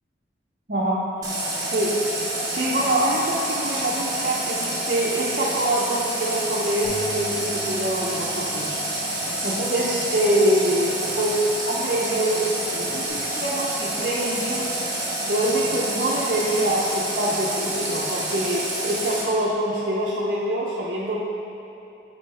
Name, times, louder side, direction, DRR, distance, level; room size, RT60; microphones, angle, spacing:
voice 1, 0.7-21.2, right 1 dB, 45° right, -8 dB, 0.7 m, -25 dB
Water tap faucet, 1.2-19.2, right 1 dB, 20° right, 1.1 m, -28 dB
Bass guitar, 6.8-13.1, left 2 dB, 50° left, 1.0 m, -43 dB
8.7 x 4.5 x 3.3 m, 2.9 s
head